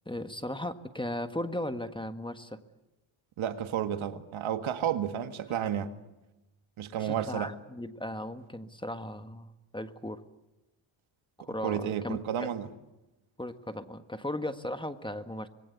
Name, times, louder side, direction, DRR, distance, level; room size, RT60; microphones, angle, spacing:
voice 1, 0.0-2.6 7.0-10.2 11.4-12.5 13.4-15.5, left 1 dB, 10° left, 1.6 m, -37 dB
voice 2, 3.4-5.9 6.8-7.5 11.6-12.7, right 9 dB, 80° right, 1.9 m, -31 dB
26.0 x 21.5 x 8.2 m
cardioid pair, 90°, 47 cm